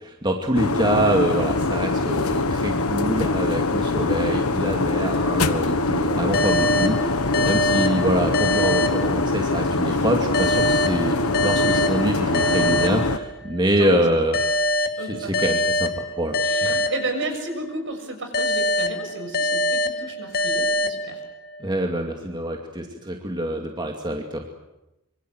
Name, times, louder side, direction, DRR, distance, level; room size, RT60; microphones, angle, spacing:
voice 1, 0.0-14.6 15.0-16.9 21.6-24.5, right 1 dB, 20° right, 2 dB, 2.4 m, -25 dB
sound 1, 0.5-13.2, left 2 dB, 70° left, 1.4 m, -23 dB
sound 2, 6.3-9.7 10.3-13.7 14.3-17.7 18.3-21.7, left 1 dB, 45° left, 1.8 m, -25 dB
voice 2, 15.0-15.4 16.4-21.2, right 2 dB, 60° right, 6 dB, 6.7 m, -32 dB
25.5 x 25.0 x 7.9 m, 0.91 s
head